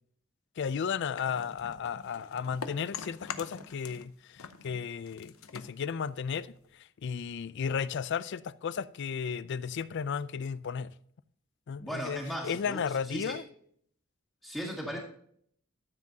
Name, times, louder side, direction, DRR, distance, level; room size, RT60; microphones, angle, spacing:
voice 1, 0.6-4.4 4.6-6.5 7.0-10.9 11.7-13.4, left 6 dB, 55° left, 0.4 m, -34 dB
sound 1, 1.1-4.1 4.4-6.7, left 6 dB, 85° left, 0.8 m, -44 dB
voice 2, 11.8-12.8 13.1-13.4 14.4-15.0, equal, 5° left, 1.8 m, -37 dB
13.0 x 7.4 x 2.8 m
head